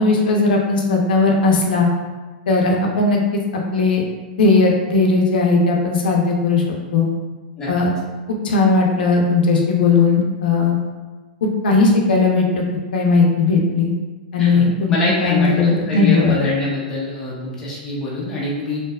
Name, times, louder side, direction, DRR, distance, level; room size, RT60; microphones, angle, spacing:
voice 1, 0.0-1.9 2.5-4.0 4.4-6.6 6.9-7.1 7.7-7.9 8.3-10.8 11.4-12.6 12.9-13.9 14.3-14.9 15.2-16.4, left 3 dB, 80° left, 0 dB, 0.5 m, -17 dB
voice 2, 14.4-18.8, left 2 dB, 10° left, -6 dB, 0.4 m, -25 dB
2.5 x 2.2 x 2.3 m, 1.3 s
supercardioid pair, 170°, 5 cm